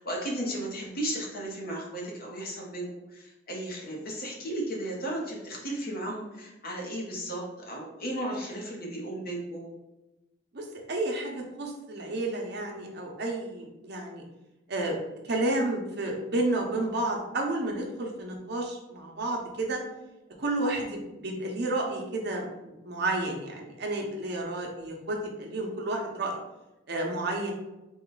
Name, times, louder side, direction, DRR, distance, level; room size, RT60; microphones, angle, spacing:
voice 1, 0.0-9.7, right 1 dB, 50° left, -2 dB, 0.9 m, -35 dB
voice 2, 10.5-14.2 14.7-14.9 15.2-19.8 20.4-26.4 26.9-27.5, right 2 dB, 60° right, 0 dB, 0.7 m, -31 dB
3.9 x 2.3 x 3.9 m, 1.0 s
head